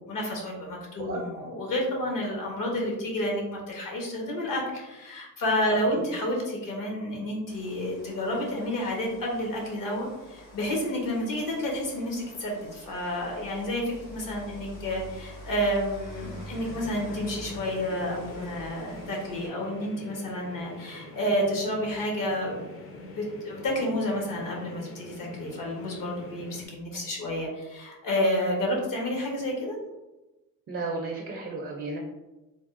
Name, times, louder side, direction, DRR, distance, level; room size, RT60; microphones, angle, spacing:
voice 1, 0.0-29.8, left 1 dB, 60° left, -1 dB, 1.0 m, -30 dB
Rain, 7.5-19.5, equal, 80° left, 1.3 m, -46 dB
sound 1, 16.5-26.7, left 2 dB, 40° left, 0.6 m, -45 dB
voice 2, 30.7-32.0, right 3 dB, 35° right, -1 dB, 0.4 m, -34 dB
3.4 x 2.0 x 2.5 m, 1.0 s
cardioid pair, 95°, 36 cm